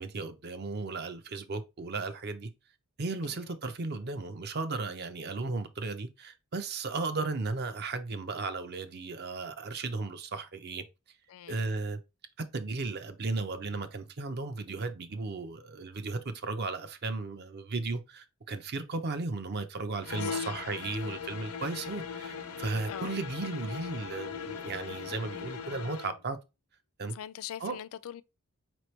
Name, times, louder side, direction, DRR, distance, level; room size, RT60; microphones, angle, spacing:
voice 1, 0.0-2.5 3.0-10.8 11.5-12.0 12.4-26.4 27.0-27.2 27.6-27.8, right 3 dB, 45° right, 0.6 m, -35 dB
voice 2, 11.3-11.7 20.2-20.5 22.9-23.1 27.1-28.2, left 10 dB, 65° left, 0.3 m, -42 dB
sound 1, 20.0-26.2, left 6 dB, 90° left, 0.7 m, -39 dB
5.0 x 3.1 x 3.1 m
head